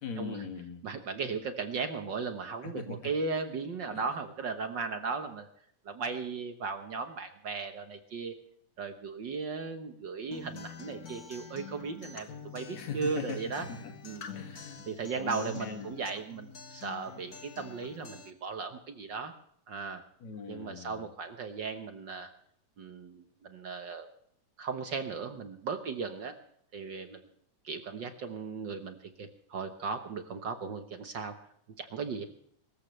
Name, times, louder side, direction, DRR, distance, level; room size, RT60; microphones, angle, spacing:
voice 1, 0.0-0.8 2.6-3.0 3.9-4.1 12.7-13.9 14.3-14.8 15.2-16.0 20.2-21.1, left 5 dB, 70° left, 5 dB, 3.4 m, -40 dB
voice 2, 0.8-5.5 5.8-8.3 8.8-12.3 12.5-13.6 14.0-14.3 14.8-19.3 19.7-20.0 20.5-22.3 22.8-24.1 24.6-26.4 26.7-27.3 27.6-31.3 31.8-32.2, right 5 dB, 60° right, 7 dB, 1.2 m, -37 dB
Acoustic guitar, 10.3-18.3, left 6 dB, 45° left, 1.2 m, -47 dB
24.0 x 14.0 x 3.2 m, 0.68 s
omnidirectional pair, 3.4 m